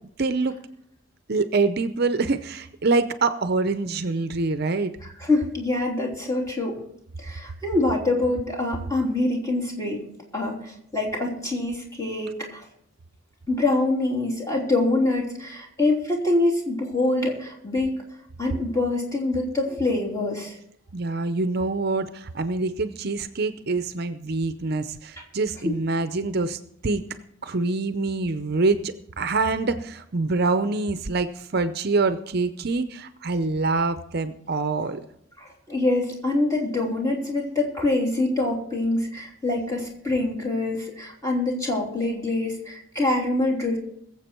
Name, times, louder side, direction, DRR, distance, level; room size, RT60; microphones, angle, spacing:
voice 1, 0.2-0.6 1.3-4.9 20.9-27.0 27.4-35.0, right 3 dB, 50° right, 10 dB, 0.6 m, -25 dB
voice 2, 5.2-6.8 7.2-10.0 10.3-12.6 13.5-17.9 18.4-20.5 35.4-43.8, left 2 dB, 15° left, -2 dB, 3.2 m, -25 dB
22.0 x 7.5 x 4.5 m, 0.72 s
head